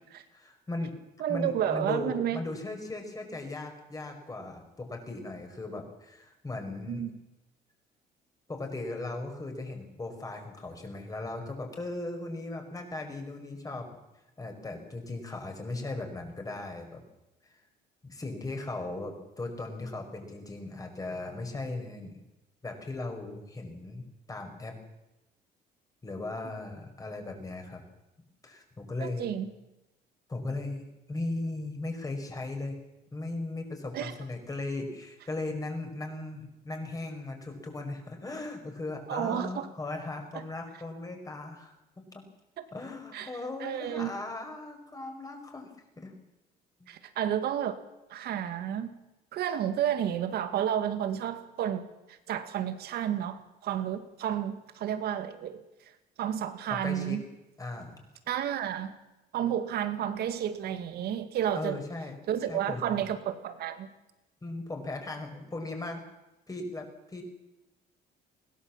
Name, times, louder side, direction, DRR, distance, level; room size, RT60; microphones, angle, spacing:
voice 1, 0.3-0.9 1.3-7.1 8.5-13.9 14.4-17.0 17.5-17.6 18.0-22.2 22.6-24.7 26.0-27.8 28.4-29.3 30.3-32.8 33.1-41.7 42.1-42.2 42.7-46.1 46.8-46.9 56.7-57.2 57.6-58.1 61.5-62.2 62.5-63.1 64.4-66.0 66.5-67.2, left 2 dB, 20° left, 4 dB, 5.4 m, -37 dB
voice 2, 1.2-2.4 6.9-7.2 29.0-29.5 33.9-34.1 39.1-39.7 42.6-42.7 43.1-43.3 43.6-44.1 46.9-47.7 48.1-48.9 49.3-55.6 56.2-57.2 58.3-58.9 59.3-61.8 62.3-63.9, right 10 dB, 70° right, 10 dB, 2.2 m, -31 dB
21.0 x 17.0 x 7.5 m, 0.96 s
cardioid pair, 110°, 17 cm